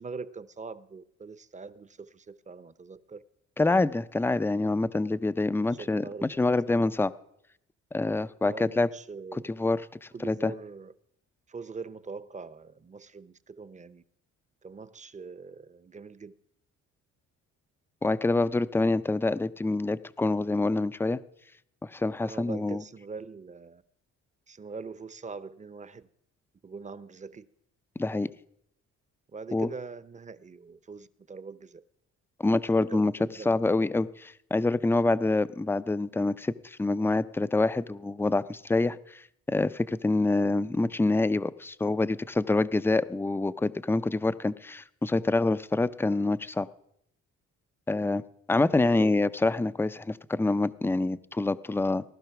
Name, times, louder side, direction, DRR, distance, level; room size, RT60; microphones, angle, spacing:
voice 1, 0.0-3.2 5.6-6.8 8.4-9.5 10.1-10.9 11.5-14.0 14.6-16.3 22.2-23.8 24.5-26.1 26.6-27.5 29.3-31.8 32.7-33.7 48.7-49.2, right 4 dB, 25° right, 0.8 m, -43 dB
voice 2, 3.6-7.1 7.9-8.9 9.3-10.5 18.0-21.2 21.8-22.8 28.0-28.3 29.5-29.7 32.4-33.1 33.5-46.7 47.9-48.2 48.5-52.0, left 2 dB, 10° left, 0.5 m, -26 dB
18.0 x 11.5 x 5.9 m
cardioid pair, 90°, 30 cm